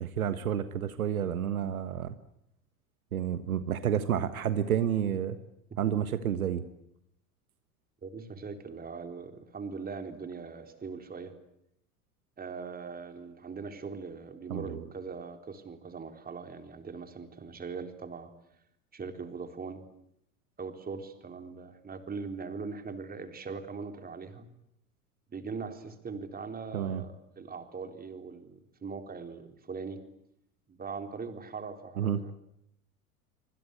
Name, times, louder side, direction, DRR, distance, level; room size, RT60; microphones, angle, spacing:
voice 1, 0.0-2.2 3.1-5.4 5.8-6.6 14.5-14.8 26.7-27.0 32.0-32.2, right 9 dB, 70° right, 12 dB, 1.5 m, -30 dB
voice 2, 8.0-11.3 12.4-18.3 18.9-19.8 20.6-24.5 25.3-30.0 30.7-32.3, right 5 dB, 20° right, 6 dB, 3.9 m, -41 dB
25.5 x 25.0 x 8.3 m, 0.78 s
figure-of-eight pair, 80°, 44 cm